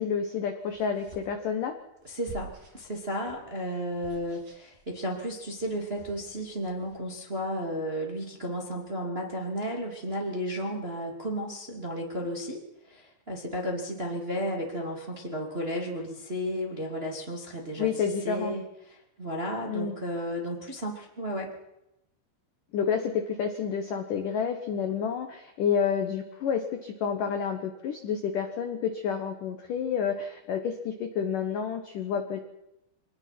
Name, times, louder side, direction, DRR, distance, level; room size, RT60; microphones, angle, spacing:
voice 1, 0.0-1.7 17.8-18.5 19.7-20.0 22.7-32.4, left 7 dB, 75° left, 6 dB, 1.9 m, -29 dB
sound 1, 0.6-6.9, right 1 dB, 50° right, 9.5 m, -51 dB
voice 2, 2.0-21.5, equal, 20° right, 0 dB, 1.8 m, -33 dB
25.0 x 19.5 x 6.0 m, 0.87 s
omnidirectional pair, 5.9 m